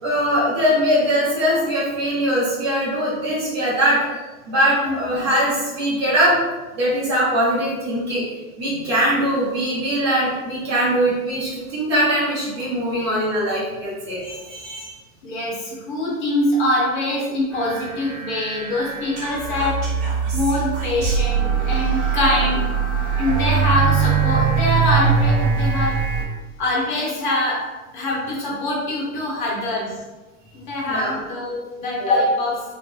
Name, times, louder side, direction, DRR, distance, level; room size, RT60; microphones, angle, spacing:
voice 1, 0.0-4.0 4.5-6.4 6.8-8.2 8.6-14.9 23.0-23.1 30.8-31.2, equal, 20° right, -7 dB, 0.6 m, -21 dB
voice 2, 4.8-5.3 13.0-13.1 15.2-19.8 20.3-22.6 23.2-26.0 26.6-27.6 27.9-29.9 30.5-32.6, left 1 dB, 35° left, -4 dB, 0.8 m, -23 dB
sound 1, 17.5-26.2, right 6 dB, 45° right, 1.3 m, -22 dB
3.7 x 2.0 x 3.2 m, 1.2 s
hypercardioid pair, 175°, 44 cm